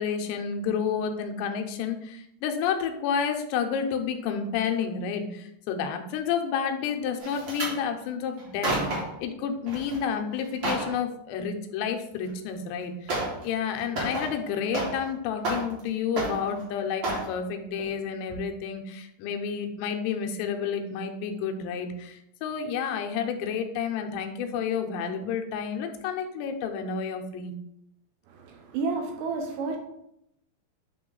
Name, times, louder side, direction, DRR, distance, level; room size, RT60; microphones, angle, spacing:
voice 1, 0.0-27.5, left 7 dB, 90° left, 4 dB, 2.9 m, -30 dB
sound 1, 7.2-7.8 8.4-9.2 9.7-10.0 10.3-10.9 12.3-12.4 13.1-13.4 13.7-15.1 15.4-15.9 16.2-16.6 17.0-17.3 17.8-18.0 18.3-18.4, right 2 dB, 45° right, 1.7 m, -30 dB
voice 2, 28.3-29.8, right 4 dB, 75° right, 4 dB, 2.5 m, -31 dB
8.7 x 3.5 x 3.9 m, 0.79 s
omnidirectional pair, 4.8 m